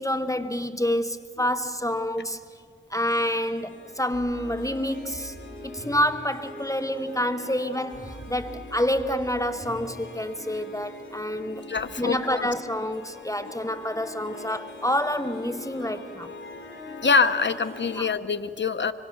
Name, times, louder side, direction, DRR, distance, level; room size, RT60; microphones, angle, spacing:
voice 1, 0.0-2.4 2.9-5.4 5.6-11.6 12.0-16.3 18.0-18.1, left 1 dB, 15° left, 10 dB, 0.9 m, -28 dB
Harp, 3.1-18.0, left 2 dB, 85° left, 4.1 m, -43 dB
sound 1, 4.1-6.1 7.9-9.9 11.8-11.9, right 1 dB, 60° right, 7.3 m, -44 dB
voice 2, 11.7-12.5 17.0-18.9, left 5 dB, 70° left, 11 dB, 0.9 m, -24 dB
25.0 x 24.0 x 6.4 m, 2.1 s
wide cardioid pair, 45°, 19 cm